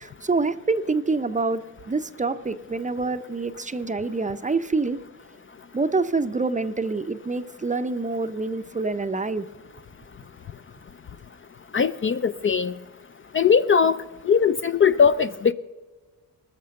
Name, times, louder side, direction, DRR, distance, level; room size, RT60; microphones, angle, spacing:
voice 1, 0.0-5.0 5.7-9.5, right 3 dB, 20° right, 11 dB, 0.6 m, -26 dB
voice 2, 11.7-12.7 13.3-14.0 14.3-15.5, left 6 dB, 35° left, 12 dB, 0.4 m, -20 dB
20.0 x 6.7 x 6.4 m, 1.3 s
cardioid pair, 90°, 38 cm